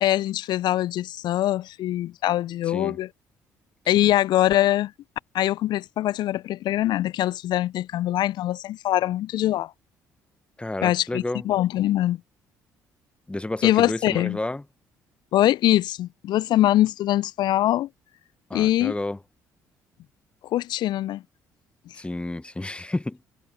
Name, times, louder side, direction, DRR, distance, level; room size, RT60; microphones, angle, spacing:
voice 1, 0.0-3.1 3.9-4.9 5.3-9.7 10.8-12.2 13.6-14.4 15.3-17.9 18.5-18.9 20.5-21.2, left 14 dB, 60° left, 0.7 m, -23 dB
voice 2, 2.7-3.0 4.0-4.1 10.6-11.5 13.3-14.6 18.5-19.2 21.9-23.2, left 2 dB, 10° left, 1.5 m, -31 dB
figure-of-eight pair, 45°, 9 cm